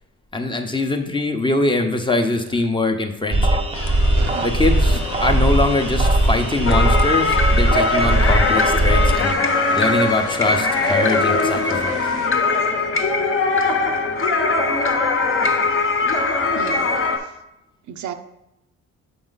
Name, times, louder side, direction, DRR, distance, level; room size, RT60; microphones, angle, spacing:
voice 1, 0.3-3.6 4.4-9.4 9.7-12.0, left 2 dB, 15° left, 5 dB, 0.8 m, -22 dB
sound 1, 3.3-9.3, right 1 dB, 20° right, 0.6 m, -19 dB
sound 2, 3.7-12.3, left 7 dB, 75° left, 0.7 m, -34 dB
voice 2, 4.1-4.5 4.9-5.0 16.5-17.3 17.9-18.1, right 9 dB, 70° right, 7 dB, 0.7 m, -34 dB
sound 3, 6.6-17.2, left 3 dB, 45° left, 1.0 m, -20 dB
7.0 x 4.4 x 4.0 m, 0.88 s
cardioid pair, 90°, 30 cm